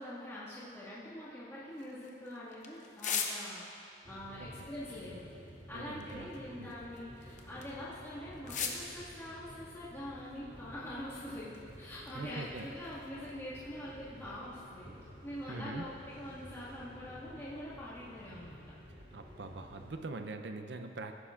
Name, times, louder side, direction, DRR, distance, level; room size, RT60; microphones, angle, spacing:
voice 1, 0.0-5.2 5.7-14.9 15.2-18.6, left 1 dB, 15° left, -11 dB, 2.0 m, -44 dB
sound 1, 1.7-3.8 4.7-7.9 8.3-8.9 9.8-10.9 11.1-13.3, left 6 dB, 45° left, 0.8 m, -43 dB
sound 2, 4.0-20.0, equal, 35° right, 2.4 m, -52 dB
voice 2, 5.7-6.3 6.6-6.8 12.1-12.7 15.5-15.9 19.1-21.1, right 3 dB, 70° right, 6 dB, 0.6 m, -43 dB
16.0 x 9.8 x 2.5 m, 2.6 s
head